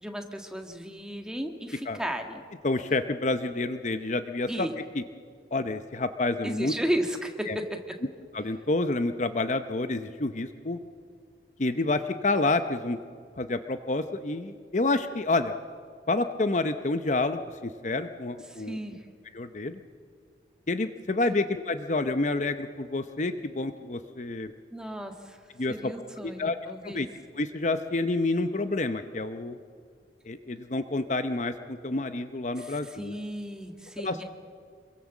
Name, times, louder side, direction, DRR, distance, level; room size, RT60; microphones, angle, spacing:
voice 1, 0.0-2.4 4.5-4.7 6.4-7.5 18.5-19.0 24.7-25.4 25.7-27.0 32.6-34.2, right 1 dB, 5° right, 4 dB, 1.8 m, -34 dB
voice 2, 2.6-4.7 4.9-5.0 5.5-6.7 7.5-7.6 8.3-10.8 11.6-13.0 13.4-15.5 16.1-18.8 19.3-19.8 20.7-24.5 25.6-25.9 26.2-26.6 26.8-27.1 27.4-29.6 30.3-33.2 34.0-34.2, left 2 dB, 40° left, 9 dB, 0.8 m, -28 dB
26.5 x 23.0 x 7.2 m, 2.1 s
head